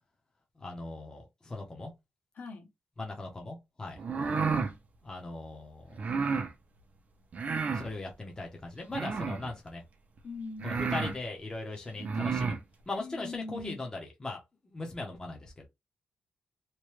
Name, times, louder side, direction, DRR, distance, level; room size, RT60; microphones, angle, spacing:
voice 1, 0.6-1.9 3.0-4.0 5.0-5.9 7.7-9.8 10.6-12.6 12.9-14.4 14.6-15.7, left 2 dB, 20° left, 0.7 m, -39 dB
voice 2, 2.4-2.7 10.2-11.1 13.0-13.9, left 3 dB, 55° left, 0.8 m, -41 dB
sound 1, 4.0-4.7 6.0-6.5 7.3-7.9 8.9-9.5 10.2-10.3 10.6-11.2 12.0-12.6, right 5 dB, 40° right, 0.5 m, -31 dB
2.9 x 2.2 x 3.1 m
wide cardioid pair, 160°, 4 cm